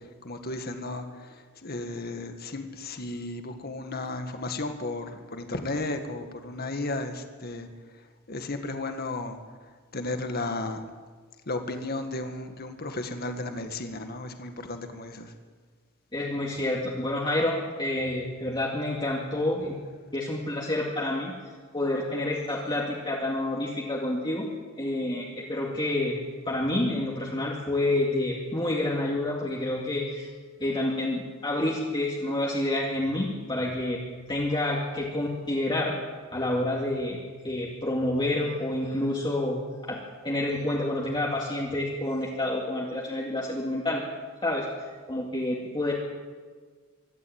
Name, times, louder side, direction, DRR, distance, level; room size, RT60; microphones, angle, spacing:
voice 1, 0.2-7.7 8.3-9.4 9.9-10.8 11.5-15.3, left 2 dB, 45° left, 6 dB, 1.9 m, -34 dB
voice 2, 16.1-19.7 20.1-21.3 21.7-24.5 24.8-26.2 26.5-30.3 30.6-34.0 34.3-36.0 36.3-37.2 37.4-44.0 44.4-44.7 45.1-45.9, left 1 dB, 20° left, -3 dB, 2.3 m, -28 dB
24.5 x 12.5 x 8.9 m, 1.5 s
head